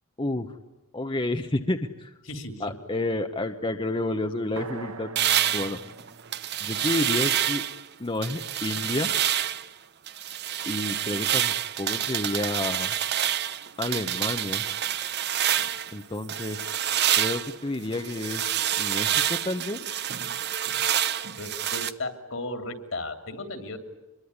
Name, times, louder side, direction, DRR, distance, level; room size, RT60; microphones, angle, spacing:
voice 1, 0.2-0.5 0.9-2.1 2.6-5.1 5.5-5.8 6.6-7.6 8.0-9.1 10.6-12.9 13.8-14.6 15.9-16.6 17.2-18.5 18.8-19.9, left 2 dB, 25° left, 6 dB, 1.0 m, -30 dB
voice 2, 2.2-2.6 21.4-23.8, left 2 dB, 60° left, 8 dB, 3.0 m, -35 dB
sound 1, 4.6-8.5, right 4 dB, 75° right, 1.9 m, -43 dB
sound 2, 5.2-7.8 8.2-9.7 10.1-15.9 16.3-21.9, right 10 dB, 50° right, 0.9 m, -27 dB
26.0 x 22.0 x 9.7 m, 1.1 s
head